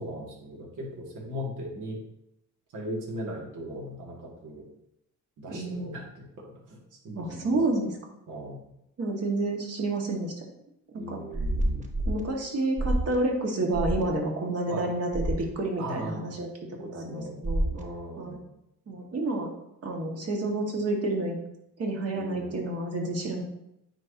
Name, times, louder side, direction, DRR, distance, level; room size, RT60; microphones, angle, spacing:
voice 1, 0.0-2.0 2.7-4.7 5.4-6.2 6.5-7.6 8.3-8.6 10.9-11.9 14.7-14.9 15.8-16.4 16.7-17.4 17.7-18.5 22.1-22.6, equal, 75° right, -2 dB, 2.4 m, -38 dB
voice 2, 5.5-5.9 7.2-7.9 9.0-10.3 10.9-11.2 12.1-16.5 16.8-17.7 18.2-18.4 18.9-19.5 19.8-21.4 21.8-23.4, right 2 dB, 50° right, 0 dB, 1.9 m, -29 dB
sound 1, 11.3-12.2 12.8-13.2 13.7-14.0 15.1-15.4 17.4-17.8, right 1 dB, 25° right, 1.0 m, -27 dB
9.3 x 4.6 x 2.9 m, 0.81 s
cardioid pair, 90°, 30 cm